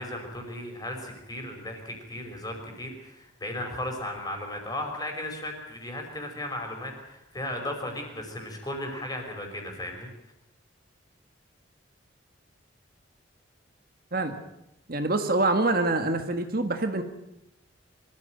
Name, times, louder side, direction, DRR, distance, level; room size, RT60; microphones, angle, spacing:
voice 1, 0.0-10.1, left 1 dB, 20° left, 3 dB, 5.4 m, -36 dB
voice 2, 14.1-14.4 14.9-17.0, right 2 dB, 50° right, 7 dB, 1.6 m, -25 dB
24.5 x 14.5 x 9.3 m, 0.85 s
head